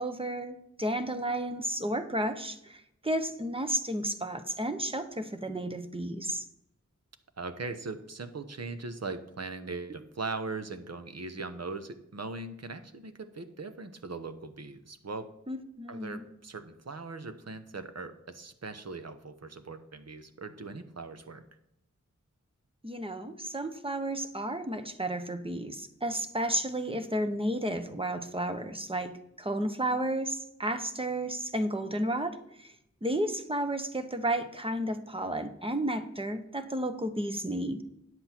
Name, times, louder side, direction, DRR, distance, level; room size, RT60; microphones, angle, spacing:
voice 1, 0.0-6.4 15.5-16.2 22.8-32.7 33.0-37.8, right 1 dB, 20° right, 8 dB, 1.0 m, -32 dB
voice 2, 7.4-15.3 15.9-21.4, right 3 dB, 60° right, 9 dB, 1.0 m, -40 dB
9.7 x 7.8 x 4.4 m, 0.79 s
wide cardioid pair, 60°, 30 cm